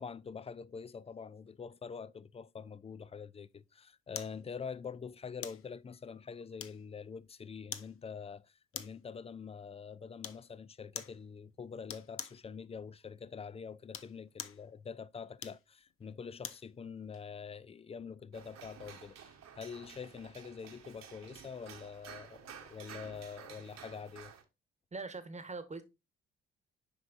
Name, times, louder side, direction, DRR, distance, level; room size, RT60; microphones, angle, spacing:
voice 1, 0.0-24.3, left 6 dB, 20° left, 0.4 m, -45 dB
sound 1, 4.1-4.4 5.4-5.7 6.6-7.0 7.7-7.9 8.7-9.1 10.2-10.5 10.9-11.2 11.9-12.4 13.8-14.6 15.4-16.7 17.1-17.3, left 8 dB, 45° left, 0.7 m, -44 dB
sound 2, 18.3-24.4, right 7 dB, 60° right, 1.3 m, -52 dB
voice 2, 24.9-25.8, right 3 dB, 25° right, 1.2 m, -42 dB
7.9 x 5.1 x 2.5 m
hypercardioid pair, 45°, 30 cm